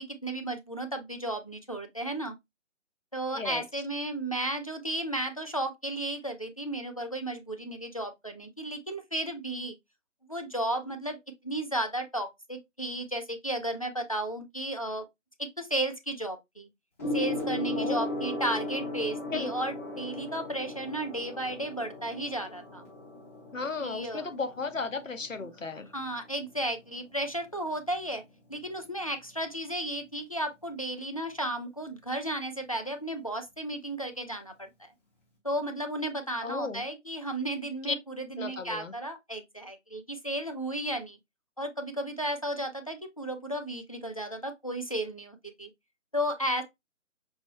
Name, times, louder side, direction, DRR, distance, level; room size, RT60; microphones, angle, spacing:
voice 1, 0.0-2.4 3.1-9.8 10.3-11.2 11.4-15.1 15.4-16.7 17.1-22.8 23.8-24.3 25.9-28.2 28.5-34.9 35.4-41.2 41.6-45.7 46.1-46.6, right 1 dB, 30° left, 0.4 m, -34 dB
voice 2, 3.3-3.6 17.8-18.1 19.3-19.5 23.5-25.9 36.4-36.8 37.9-38.0 38.4-38.9, left 4 dB, 80° left, 0.9 m, -34 dB
Gong, 17.0-26.8 27.7-28.0, left 2 dB, 10° left, 0.7 m, -37 dB
5.3 x 2.0 x 2.9 m
figure-of-eight pair, 145°, 38 cm